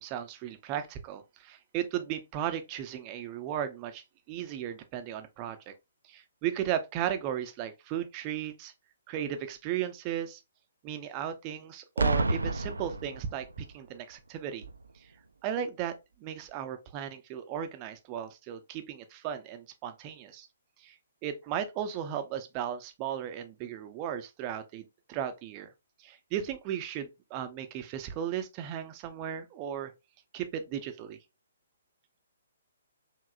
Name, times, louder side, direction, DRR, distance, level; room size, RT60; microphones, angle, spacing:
voice 1, 0.0-5.7 6.1-8.7 9.1-10.4 10.8-13.5 13.7-14.6 15.4-15.9 16.2-20.5 20.8-20.9 21.2-25.7 26.0-29.9 30.3-31.2, right 10 dB, 30° right, 0.6 m, -35 dB
Boom, 12.0-13.7 14.6-14.9, right 3 dB, 80° right, 0.5 m, -30 dB
4.8 x 2.9 x 2.4 m
figure-of-eight pair, 130°, 0 cm